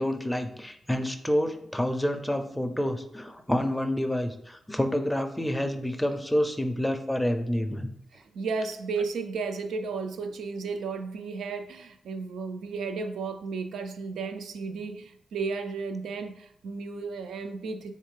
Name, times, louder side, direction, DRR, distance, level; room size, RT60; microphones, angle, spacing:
voice 1, 0.0-7.9, left 1 dB, 5° left, 6 dB, 0.4 m, -28 dB
voice 2, 8.1-17.9, right 4 dB, 90° right, 8 dB, 0.3 m, -34 dB
3.5 x 3.2 x 3.2 m, 0.73 s
cardioid pair, 80°, 0 cm